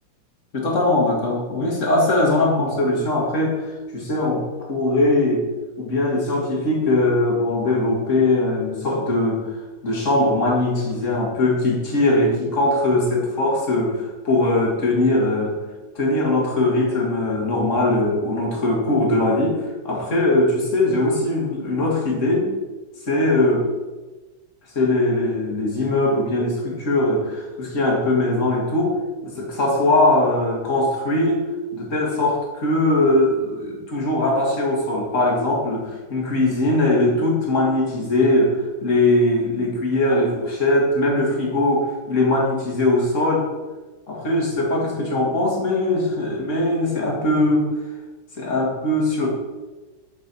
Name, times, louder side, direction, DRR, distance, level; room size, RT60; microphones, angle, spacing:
voice 1, 0.5-5.4 5.8-9.5 9.8-15.6 16.0-19.6 19.8-22.5 23.1-23.6 24.7-28.9 29.2-31.4 31.7-43.5 44.1-47.7 48.4-49.3, left 2 dB, 40° left, -2 dB, 2.3 m, -20 dB
6.8 x 6.6 x 6.0 m, 1.2 s
omnidirectional pair, 2.1 m